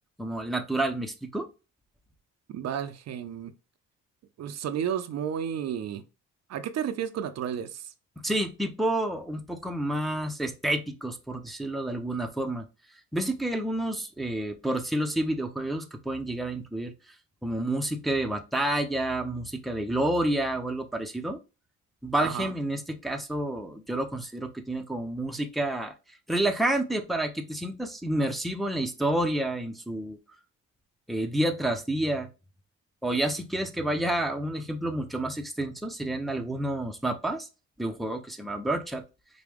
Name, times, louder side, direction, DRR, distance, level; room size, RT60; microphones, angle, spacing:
voice 1, 0.2-1.5 8.2-12.7 13.1-17.1 17.4-21.4 22.0-25.9 26.3-30.2 31.1-32.3 33.0-37.5 37.8-39.0, right 1 dB, ahead, 0.6 m, -29 dB
voice 2, 2.5-3.5 4.4-6.0 6.5-7.9 22.2-22.5, right 9 dB, 60° right, 0.5 m, -32 dB
4.8 x 2.2 x 3.4 m
cardioid pair, 90°, 30 cm